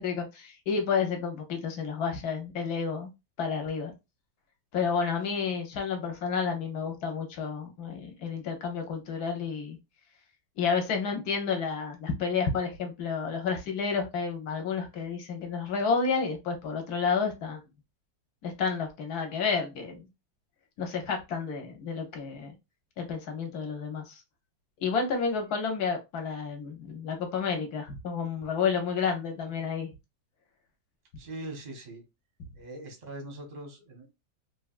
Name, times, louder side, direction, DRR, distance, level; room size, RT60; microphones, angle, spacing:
voice 1, 0.0-3.1 3.4-3.9 4.7-9.8 10.6-17.6 18.4-20.1 20.8-22.5 23.0-24.2 24.8-29.9, left 5 dB, 65° left, 4 dB, 1.1 m, -30 dB
voice 2, 31.2-32.0 32.6-34.1, right 1 dB, 40° right, 3 dB, 0.6 m, -41 dB
3.3 x 2.2 x 2.3 m, 0.24 s
omnidirectional pair, 1.9 m